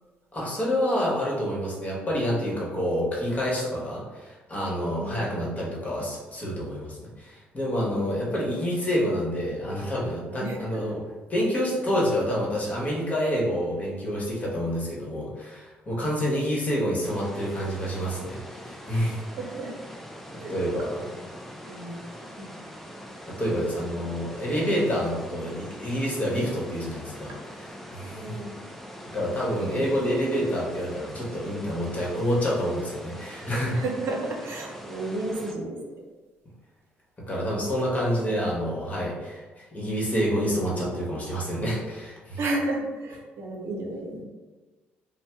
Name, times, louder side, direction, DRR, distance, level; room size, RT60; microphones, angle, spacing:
voice 1, 0.3-11.0 11.3-19.2 20.5-21.0 23.3-28.4 29.0-33.8 37.3-42.4, equal, 30° left, -4 dB, 1.2 m, -28 dB
voice 2, 5.0-5.4 8.0-8.3 10.3-10.8 16.0-16.3 19.4-19.8 20.4-20.5 20.8-21.2 21.7-22.0 22.4-22.5 27.3-27.4 28.0-28.5 29.6-29.9 33.7-35.8 38.1-38.3 39.8-40.1 42.4-44.2, right 2 dB, 60° right, 0 dB, 0.6 m, -33 dB
sound 1, 17.0-35.5, equal, 5° left, 0.5 m, -43 dB
2.6 x 2.1 x 3.4 m, 1.3 s
hypercardioid pair, 55°, 5 cm